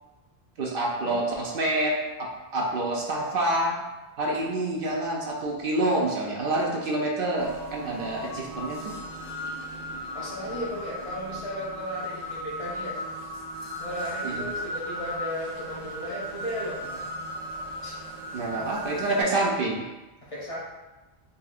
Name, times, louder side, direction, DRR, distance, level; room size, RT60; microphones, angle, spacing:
voice 1, 0.6-3.8 4.2-8.9 14.2-14.5 18.3-19.8, right 1 dB, 65° right, -2 dB, 0.7 m, -27 dB
sound 1, 7.3-19.2, equal, 5° right, 1.4 m, -36 dB
voice 2, 10.1-13.0 13.8-17.1 17.8-18.0 20.2-20.6, equal, 35° left, -7 dB, 0.8 m, -35 dB
4.0 x 2.7 x 2.4 m, 1.1 s
omnidirectional pair, 1.1 m